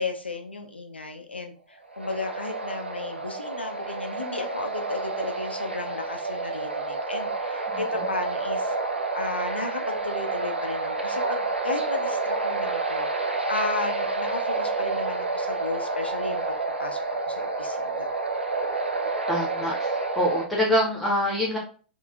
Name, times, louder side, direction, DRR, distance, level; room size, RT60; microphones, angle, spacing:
voice 1, 0.0-8.7 9.1-18.1, left 3 dB, 85° left, 4 dB, 0.5 m, -34 dB
sound 1, 1.9-20.5, right 3 dB, 85° right, 0.5 m, -29 dB
voice 2, 19.3-19.9 20.2-21.6, equal, 5° left, -4 dB, 0.9 m, -24 dB
3.6 x 2.5 x 2.3 m, 0.40 s
figure-of-eight pair, 100°, 6 cm